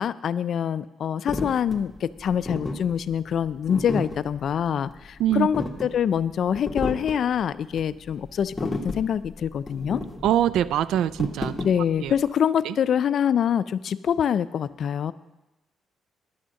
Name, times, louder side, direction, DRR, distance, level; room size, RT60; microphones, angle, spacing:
voice 1, 0.0-10.0 11.6-15.1, left 8 dB, 60° left, 16 dB, 0.4 m, -25 dB
sound 1, 1.3-12.2, left 2 dB, 15° left, 1.4 m, -33 dB
voice 2, 10.2-11.6 12.0-12.1 12.7-12.8, right 11 dB, 80° right, 17 dB, 0.3 m, -23 dB
10.5 x 6.2 x 6.9 m, 1.0 s
cardioid pair, 90°, 0 cm